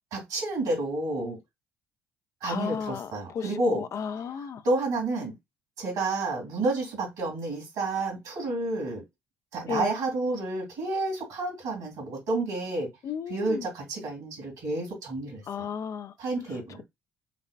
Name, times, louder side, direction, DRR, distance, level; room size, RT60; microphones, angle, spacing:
voice 1, 0.1-1.4 2.4-3.9 4.4-5.3 5.8-9.0 9.5-12.9 13.3-15.7 16.2-16.8, right 2 dB, 70° right, 2.5 m, -30 dB
voice 2, 2.4-4.6 9.7-9.9 13.0-13.6 15.5-16.1, left 7 dB, 50° left, 0.4 m, -34 dB
5.8 x 2.2 x 2.4 m
hypercardioid pair, 50°, 7 cm